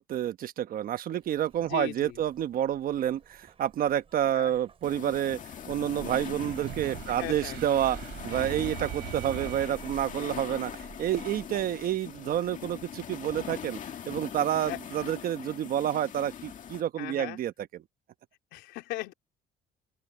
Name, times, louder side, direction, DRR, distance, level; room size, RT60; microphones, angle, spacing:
voice 1, 0.0-5.4 5.7-8.0 8.2-13.8 14.1-17.8, right 11 dB, 60° right, 1.1 m, -29 dB
Zipper (clothing), 1.2-12.9, right 6 dB, 35° right, 3.1 m, -51 dB
voice 2, 1.7-2.2 4.3-4.6 7.1-7.6 14.6-14.8 17.0-17.4 18.5-19.1, left 17 dB, 90° left, 3.6 m, -38 dB
sound 1, 4.8-16.8, left 9 dB, 50° left, 2.0 m, -41 dB
sound 2, 6.4-10.2, right 18 dB, 90° right, 3.1 m, -41 dB
open air
cardioid pair, 110°, 17 cm